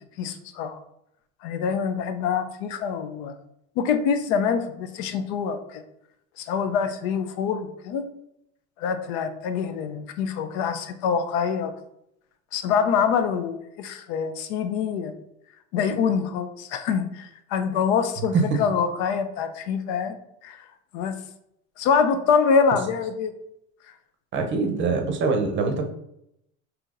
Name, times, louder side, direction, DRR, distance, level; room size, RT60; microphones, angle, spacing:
voice 1, 0.2-0.8 1.4-3.4 3.8-5.8 6.4-8.1 8.8-11.7 12.5-15.1 15.7-20.2 20.4-20.7 20.9-21.2 21.8-23.3, left 6 dB, 70° left, 10 dB, 0.6 m, -25 dB
voice 2, 24.3-25.8, right 4 dB, 35° right, 4 dB, 0.7 m, -23 dB
5.5 x 2.8 x 2.5 m, 0.79 s
supercardioid pair, 115°, 35 cm